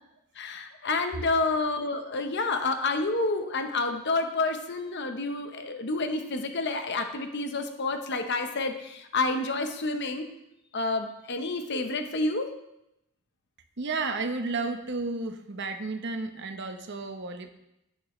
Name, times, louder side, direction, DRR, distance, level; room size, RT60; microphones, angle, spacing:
voice 1, 0.4-10.3 10.7-12.5, left 3 dB, 50° left, 6 dB, 0.9 m, -29 dB
voice 2, 13.8-17.5, right 3 dB, 50° right, 6 dB, 0.9 m, -32 dB
11.0 x 9.0 x 3.1 m, 0.84 s
head